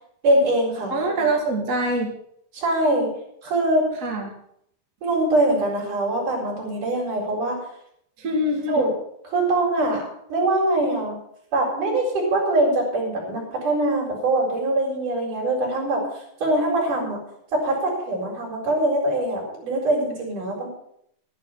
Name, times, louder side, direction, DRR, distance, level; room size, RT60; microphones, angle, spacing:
voice 1, 0.2-1.0 2.5-3.1 3.4-3.9 5.0-7.6 8.7-8.9 9.2-11.2 11.5-16.0 16.4-17.2 17.5-20.7, right 1 dB, 55° right, -3 dB, 5.7 m, -23 dB
voice 2, 0.9-2.1 4.0-4.3 8.2-8.9, right 1 dB, 30° right, 0 dB, 1.6 m, -24 dB
12.0 x 10.5 x 5.6 m, 0.69 s
omnidirectional pair, 4.5 m